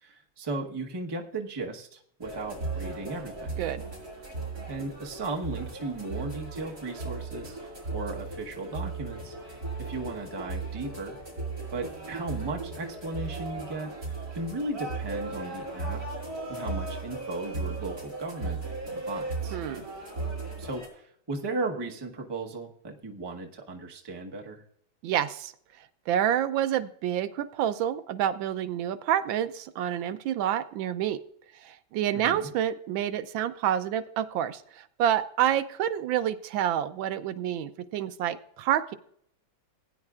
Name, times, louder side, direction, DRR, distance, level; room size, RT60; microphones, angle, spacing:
voice 1, 0.0-3.5 4.7-7.6 7.9-11.2 11.7-13.9 14.3-16.0 16.5-18.6 18.9-19.6 20.6-24.6 32.1-32.5, right 2 dB, 20° right, 2 dB, 0.7 m, -36 dB
sound 1, 2.2-20.9, right 3 dB, 45° right, 5.1 m, -36 dB
voice 2, 19.5-19.8 25.0-25.5 26.1-31.2 31.6-38.9, right 10 dB, 80° right, 12 dB, 1.3 m, -28 dB
16.5 x 9.6 x 2.4 m, 0.66 s
omnidirectional pair, 2.1 m